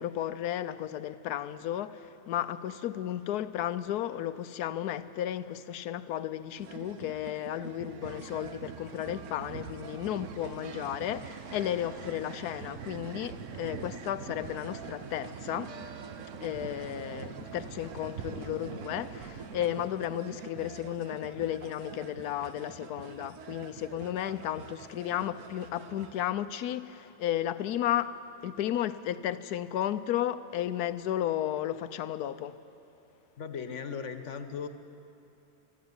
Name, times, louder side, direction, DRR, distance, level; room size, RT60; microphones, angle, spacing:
voice 1, 0.0-15.7 16.4-28.2 28.4-32.6, left 11 dB, 85° left, 1.2 m, -33 dB
sound 1, 6.6-26.2, right 6 dB, 75° right, 1.4 m, -47 dB
sound 2, 8.0-19.9, right 7 dB, 60° right, 1.1 m, -44 dB
voice 2, 33.4-34.7, left 6 dB, 55° left, 1.4 m, -37 dB
21.5 x 13.5 x 9.7 m
omnidirectional pair, 1.6 m